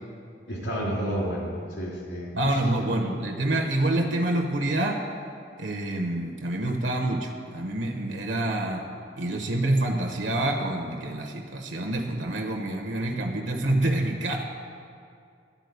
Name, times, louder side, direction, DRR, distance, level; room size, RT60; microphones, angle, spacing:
voice 1, 0.5-2.8, equal, 75° left, -3 dB, 2.6 m, -31 dB
voice 2, 2.3-5.0 5.6-8.8 9.2-14.4, right 1 dB, 85° right, 2 dB, 1.0 m, -27 dB
12.5 x 4.3 x 8.2 m, 2.3 s
head